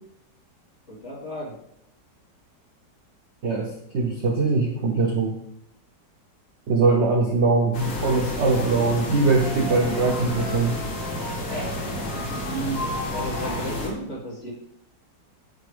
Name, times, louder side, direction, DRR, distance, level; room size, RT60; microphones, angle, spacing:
voice 1, 0.9-1.6 11.5-11.7 12.4-12.8 13.1-14.5, right 1 dB, 40° left, -6 dB, 2.2 m, -33 dB
voice 2, 3.4-5.4 6.7-10.8, right 3 dB, 75° right, 1 dB, 0.6 m, -22 dB
sound 1, 7.7-13.9, left 1 dB, 75° left, 2.2 m, -30 dB
9.7 x 3.4 x 3.3 m, 0.76 s
omnidirectional pair, 2.0 m